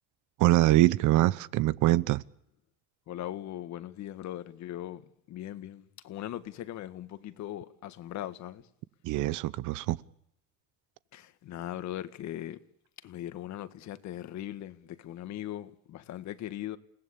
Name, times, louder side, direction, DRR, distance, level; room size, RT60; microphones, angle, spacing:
voice 1, 0.4-2.2 9.0-10.0, right 16 dB, 85° right, 1.0 m, -24 dB
voice 2, 3.1-8.7 11.1-12.6 13.0-16.8, left 12 dB, 65° left, 1.7 m, -39 dB
29.5 x 18.0 x 8.6 m
cardioid pair, 130°, 30 cm